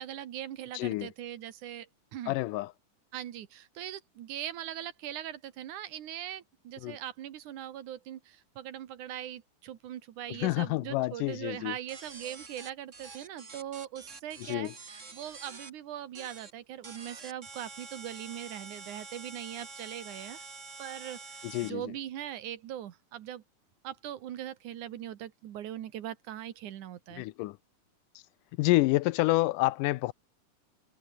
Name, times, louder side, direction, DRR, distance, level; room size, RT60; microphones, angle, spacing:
voice 1, 0.0-2.4 3.1-20.4 20.8-23.4 23.8-27.2, right 11 dB, 70° right, 2.7 m, -41 dB
voice 2, 0.7-1.1 2.3-2.7 6.8-7.0 10.4-11.8 14.4-14.7 21.4-21.8 27.2-27.6 28.6-30.1, left 19 dB, 80° left, 2.1 m, -28 dB
sound 1, 11.9-15.7 16.1-16.5 16.8-21.7, right 4 dB, 25° right, 2.1 m, -47 dB
omnidirectional pair, 3.8 m